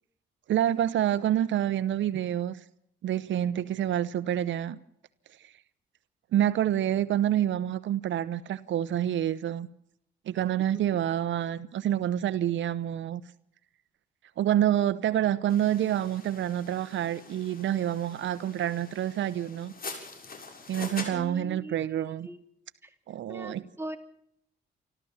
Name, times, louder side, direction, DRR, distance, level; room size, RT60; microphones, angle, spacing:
voice 1, 0.5-2.6 3.0-4.8 5.4-5.5 6.3-9.7 10.3-13.2 14.4-19.7 20.7-22.3 23.1-23.6, right 11 dB, 80° right, 0.9 m, -27 dB
sound 1, 15.5-21.1, left 4 dB, 50° left, 6.6 m, -44 dB
voice 2, 21.1-22.4 22.8-22.9 23.3-24.0, right 1 dB, 10° right, 2.9 m, -41 dB
28.0 x 13.5 x 7.3 m
cardioid pair, 85°, 19 cm